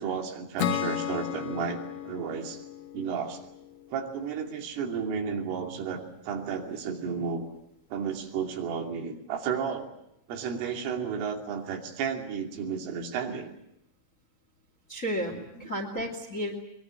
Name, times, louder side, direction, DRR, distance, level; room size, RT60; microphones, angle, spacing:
voice 1, 0.0-2.6 2.9-3.4 3.9-7.5 7.9-9.9 10.3-13.5 15.3-15.7, right 6 dB, 85° right, 2 dB, 5.3 m, -33 dB
Acoustic guitar / Strum, 0.6-4.0, left 9 dB, 60° left, 3.2 m, -34 dB
voice 2, 14.9-16.6, equal, 25° left, 4 dB, 1.9 m, -33 dB
23.0 x 22.5 x 8.8 m, 0.81 s
omnidirectional pair, 5.6 m